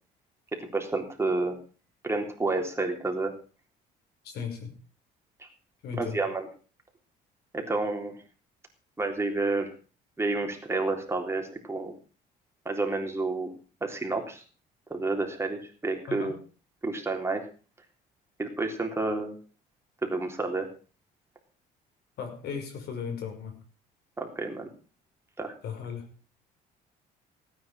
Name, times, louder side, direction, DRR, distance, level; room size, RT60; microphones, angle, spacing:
voice 1, 0.6-1.6 2.0-3.3 5.4-5.5 5.9-6.5 7.5-8.2 9.0-9.7 10.2-12.0 12.7-13.6 13.8-14.4 14.9-16.4 16.8-17.5 18.4-19.4 20.0-20.7 24.2-24.7 25.4-25.5, right 3 dB, 15° right, 2 dB, 3.7 m, -30 dB
voice 2, 4.2-4.7 5.8-6.2 16.1-16.3 22.2-23.5 25.6-26.1, left 6 dB, 75° left, 5 dB, 5.7 m, -36 dB
17.0 x 9.6 x 6.2 m, 0.38 s
cardioid pair, 110°, 17 cm